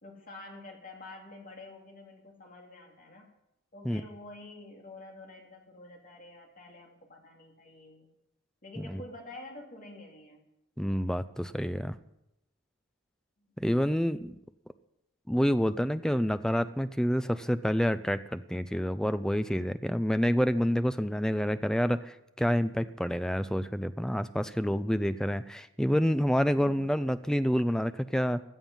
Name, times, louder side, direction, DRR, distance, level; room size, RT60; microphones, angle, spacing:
voice 1, 0.0-3.3 3.7-8.1 8.6-10.4 13.4-13.5 21.0-21.6, left 2 dB, 40° left, 1 dB, 2.8 m, -48 dB
voice 2, 10.8-12.0 13.6-14.3 15.3-28.4, equal, 5° left, 12 dB, 0.5 m, -28 dB
16.5 x 11.0 x 5.6 m, 0.85 s
head